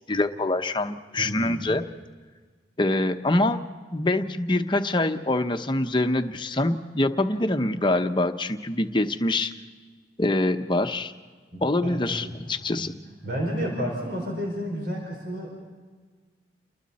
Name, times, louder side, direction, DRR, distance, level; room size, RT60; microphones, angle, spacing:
voice 1, 0.1-1.8 2.8-3.6 3.9-9.5 10.2-11.1 11.6-12.9, left 2 dB, 25° left, 7 dB, 0.9 m, -25 dB
voice 2, 1.2-1.6 11.8-12.9 13.2-15.6, equal, 65° right, 0 dB, 4.7 m, -31 dB
29.5 x 21.5 x 4.2 m, 1.5 s
head